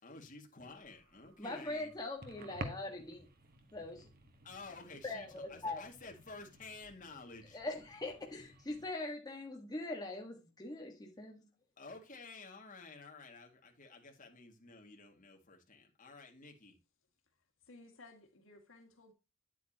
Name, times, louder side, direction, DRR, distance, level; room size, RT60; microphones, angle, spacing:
voice 1, 0.0-1.9 4.4-7.6 11.8-16.8, left 3 dB, 40° left, 2.1 m, -52 dB
sound 1, 0.7-8.9, right 2 dB, 45° right, 1.3 m, -52 dB
voice 2, 1.4-3.3 3.7-4.1 5.0-5.8 7.5-11.5, left 2 dB, 20° left, 1.5 m, -42 dB
voice 3, 17.7-19.1, left 2 dB, 75° left, 2.2 m, -57 dB
9.4 x 8.3 x 2.9 m
head